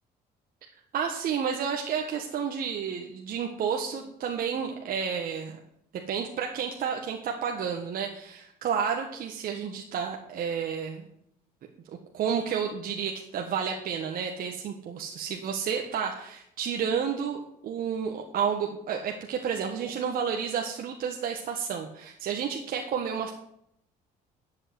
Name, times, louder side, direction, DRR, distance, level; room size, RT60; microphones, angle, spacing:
voice 1, 0.9-5.6 6.1-11.0 12.1-23.3, right 7 dB, 60° right, 2 dB, 1.6 m, -31 dB
11.0 x 7.7 x 9.6 m, 0.75 s
cardioid pair, 110°, 17 cm